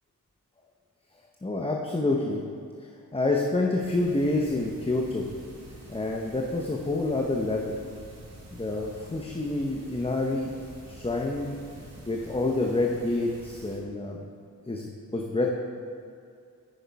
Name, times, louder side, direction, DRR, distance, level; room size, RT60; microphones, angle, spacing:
voice 1, 1.4-2.4 3.1-5.3 5.9-7.7 8.5-11.6 12.1-14.3 14.7-15.5, left 2 dB, 15° left, 0 dB, 0.8 m, -28 dB
sound 1, 3.8-13.8, right 1 dB, 45° right, 2.3 m, -48 dB
9.5 x 6.4 x 4.7 m, 2.3 s
cardioid pair, 65°, 35 cm